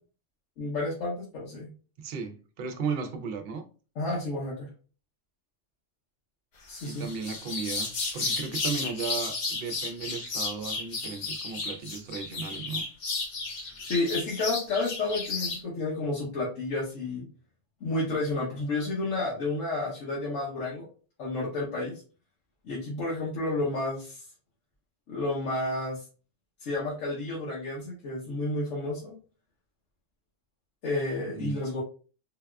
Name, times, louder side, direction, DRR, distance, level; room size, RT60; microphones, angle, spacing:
voice 1, 0.6-1.7 4.0-4.7 6.7-7.1 13.8-17.3 17.8-20.9 21.2-22.0 22.6-24.2 25.1-26.0 26.6-29.1 30.8-31.8, left 2 dB, 85° left, -5 dB, 1.2 m, -31 dB
voice 2, 2.0-3.6 6.8-12.8 31.3-31.6, right 5 dB, 60° right, 5 dB, 0.7 m, -35 dB
sound 1, 6.7-15.6, left 3 dB, 45° left, 0.6 m, -33 dB
3.9 x 2.3 x 2.2 m, 0.38 s
omnidirectional pair, 1.3 m